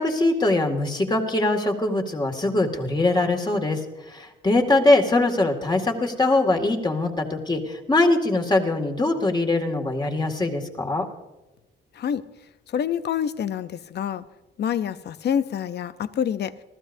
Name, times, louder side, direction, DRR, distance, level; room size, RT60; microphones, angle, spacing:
voice 1, 0.0-11.1, left 2 dB, 20° left, 2 dB, 2.2 m, -22 dB
voice 2, 12.7-14.2 14.6-16.5, left 8 dB, 60° left, 14 dB, 0.7 m, -27 dB
27.0 x 15.0 x 2.7 m, 1.0 s
cardioid pair, 90°, 20 cm